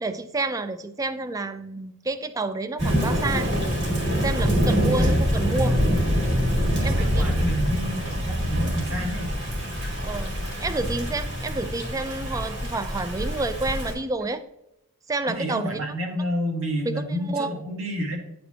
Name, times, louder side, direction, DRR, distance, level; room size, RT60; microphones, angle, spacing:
voice 1, 0.0-3.5 4.2-5.8 6.8-7.3 10.0-10.3 10.6-14.4 15.1-15.8 16.8-17.5, right 2 dB, 15° right, 11 dB, 0.3 m, -29 dB
Thunder / Rain, 2.8-13.9, equal, 55° right, 2.3 m, -25 dB
voice 2, 4.7-5.1 6.6-9.3 15.3-18.2, right 1 dB, 70° right, 1 dB, 1.4 m, -29 dB
9.3 x 4.3 x 2.7 m, 0.85 s
head